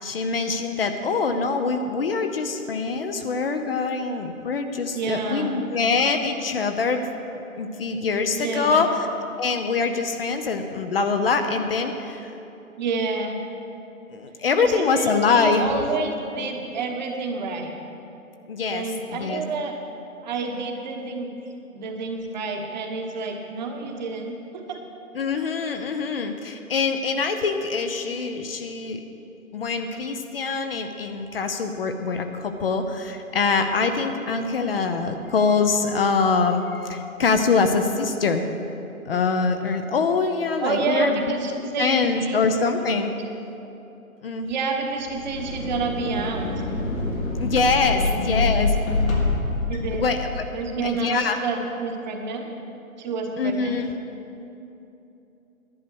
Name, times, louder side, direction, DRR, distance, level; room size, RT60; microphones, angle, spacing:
voice 1, 0.0-7.1 7.6-9.1 9.4-12.3 14.1-15.6 18.5-19.4 25.1-29.0 29.5-38.4 39.1-41.2 41.8-43.1 44.2-44.5 47.4-48.7 49.9-50.5 50.8-51.4 53.4-53.9, left 4 dB, 45° left, 7 dB, 0.7 m, -24 dB
voice 2, 4.9-5.6 8.3-8.9 12.8-13.4 14.6-17.7 18.6-19.7 20.2-21.3 21.7-24.8 40.6-42.4 44.4-46.5 47.9-49.3 49.7-50.0 50.5-52.5 53.0-53.8, right 3 dB, 30° right, 3 dB, 1.1 m, -29 dB
sound 1, 45.0-50.6, left 3 dB, 65° left, 2.5 m, -26 dB
11.0 x 9.2 x 6.2 m, 2.9 s
hypercardioid pair, 145°, 42 cm